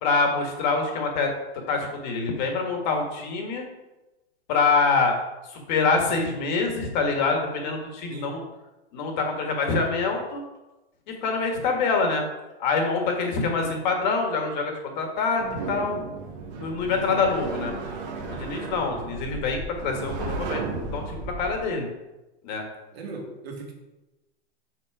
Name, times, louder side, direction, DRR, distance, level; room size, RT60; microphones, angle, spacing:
voice 1, 0.0-3.6 4.5-5.2 5.5-8.4 8.9-10.4 11.1-12.3 12.6-16.0 16.5-17.7 18.3-21.9 22.4-22.6, left 4 dB, 45° left, 3 dB, 1.6 m, -25 dB
sound 1, 15.4-21.6, right 3 dB, 45° right, 1.0 m, -34 dB
voice 2, 22.9-23.7, right 3 dB, 75° right, 1 dB, 2.0 m, -38 dB
6.2 x 5.9 x 4.8 m, 1.0 s
supercardioid pair, 175°, 31 cm